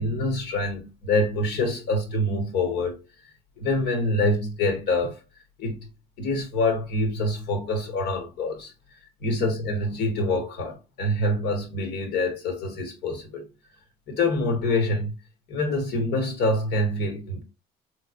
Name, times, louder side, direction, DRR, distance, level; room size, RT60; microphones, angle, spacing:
voice 1, 0.0-3.0 3.6-5.2 5.6-5.9 6.2-8.7 9.2-13.5 14.1-15.1 15.5-17.4, left 2 dB, 80° left, 1.3 m, -26 dB
3.8 x 3.2 x 2.5 m
cardioid pair, 110°, 17 cm